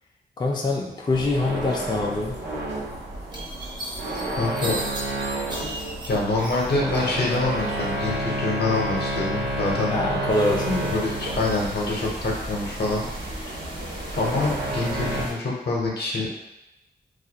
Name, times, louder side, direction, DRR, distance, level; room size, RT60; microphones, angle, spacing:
voice 1, 0.4-2.4 9.9-10.9, left 2 dB, 25° left, -2 dB, 0.3 m, -24 dB
sound 1, 1.1-15.2, right 1 dB, 85° right, 0.5 m, -30 dB
sound 2, 3.3-7.0 7.3-8.1, right 2 dB, 25° right, 0.5 m, -36 dB
voice 2, 4.4-4.8 6.1-10.0 10.9-13.1 14.2-16.4, left 2 dB, 70° left, -3 dB, 0.7 m, -25 dB
sound 3, 10.3-15.3, right 1 dB, 60° right, 0.8 m, -37 dB
2.3 x 2.1 x 2.8 m, 0.94 s
wide cardioid pair, 75°, 18 cm